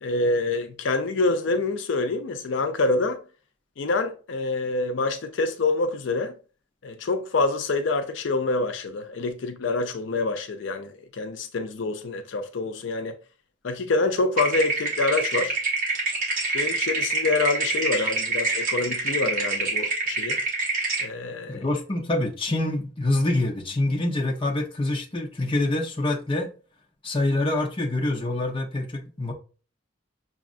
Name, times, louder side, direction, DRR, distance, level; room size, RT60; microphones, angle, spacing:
voice 1, 0.0-3.2 3.8-6.3 6.8-13.2 13.6-15.6 16.5-20.4 21.0-21.6, left 3 dB, 75° left, 0.5 m, -26 dB
sound 1, 14.4-21.1, right 3 dB, 45° right, 1.1 m, -26 dB
voice 2, 21.5-26.5 27.0-29.3, left 2 dB, 25° left, 0.7 m, -26 dB
6.1 x 2.4 x 2.4 m
head